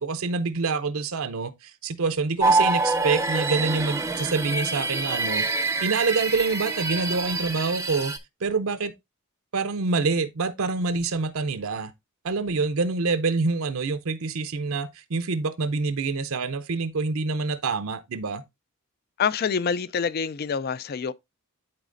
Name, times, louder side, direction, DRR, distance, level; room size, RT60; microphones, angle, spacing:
voice 1, 0.0-8.1 8.4-8.9 9.5-11.9 12.2-18.4, right 4 dB, 65° right, 0.6 m, -26 dB
sound 1, 2.4-8.2, right 3 dB, 15° right, 0.6 m, -26 dB
voice 2, 19.2-21.1, left 6 dB, 45° left, 0.4 m, -26 dB
12.0 x 4.1 x 2.5 m
head